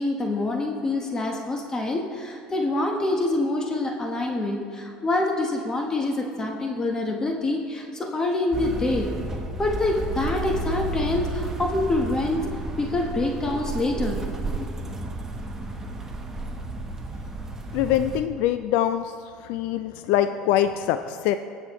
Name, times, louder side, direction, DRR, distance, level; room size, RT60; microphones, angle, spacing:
voice 1, 0.0-9.1 9.6-14.7, left 2 dB, 20° left, 1 dB, 1.2 m, -26 dB
sound 1, 8.5-18.2, right 2 dB, 15° right, 1.1 m, -32 dB
voice 2, 17.7-19.1 19.4-21.3, left 11 dB, 70° left, 10 dB, 0.3 m, -23 dB
19.0 x 7.2 x 3.1 m, 2.5 s
supercardioid pair, 100°, 3 cm